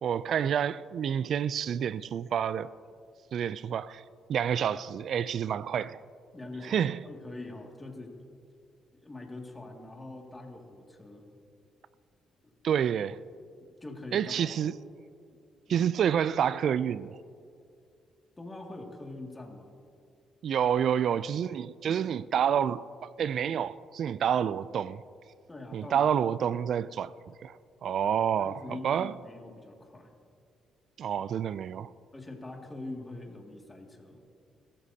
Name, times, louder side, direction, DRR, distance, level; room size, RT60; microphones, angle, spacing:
voice 1, 0.0-2.7 3.3-4.0 4.3-6.0 6.6-7.0 12.6-13.2 14.1-14.7 15.7-17.2 20.4-25.0 25.7-27.1 27.4-29.2 31.0-31.9, right 8 dB, 65° right, 0.3 m, -28 dB
voice 2, 6.3-6.8 7.0-8.2 8.9-11.2 12.4-12.5 13.8-14.6 15.7-15.8 18.4-19.7 25.5-26.1 28.4-30.1 32.1-34.2, left 2 dB, 15° left, 2.2 m, -43 dB
22.5 x 14.5 x 2.8 m
cardioid pair, 90°, 0 cm